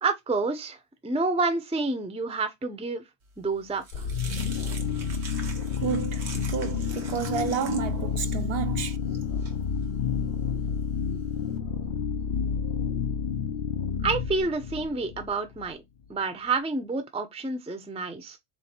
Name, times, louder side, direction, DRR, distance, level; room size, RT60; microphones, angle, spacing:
voice 1, 0.0-3.0 3.4-4.1 14.0-15.8 16.1-18.4, right 3 dB, 10° right, 0.5 m, -29 dB
sound 1, 3.3-11.6, right 4 dB, 90° right, 1.3 m, -45 dB
sound 2, 3.9-15.7, left 6 dB, 65° left, 0.7 m, -30 dB
voice 2, 5.8-9.0, right 8 dB, 65° right, 0.8 m, -31 dB
3.7 x 3.1 x 4.2 m
omnidirectional pair, 1.1 m